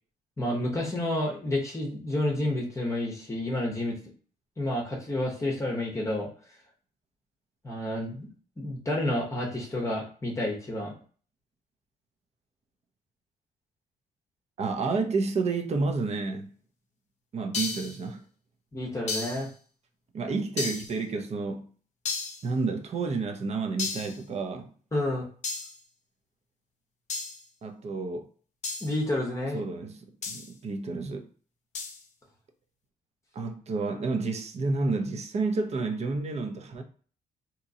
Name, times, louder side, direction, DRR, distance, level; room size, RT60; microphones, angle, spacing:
voice 1, 0.4-4.0 4.6-6.3 7.6-8.3 8.6-10.9 18.7-19.5 24.9-25.3 28.8-29.6, left 1 dB, 20° left, 0.8 m, -30 dB
voice 2, 14.6-16.6 17.3-18.3 20.1-21.7 22.4-24.7 27.6-28.3 29.5-31.3 33.3-36.8, right 3 dB, 40° right, 0.7 m, -30 dB
sound 1, 17.5-18.0 19.1-19.5 20.6-21.0 22.0-22.5 23.8-24.2 25.4-25.8 27.1-27.4 28.6-28.9 30.2-30.5 31.7-32.0, left 4 dB, 45° left, 0.6 m, -33 dB
3.6 x 2.9 x 2.7 m
cardioid pair, 130°, 16 cm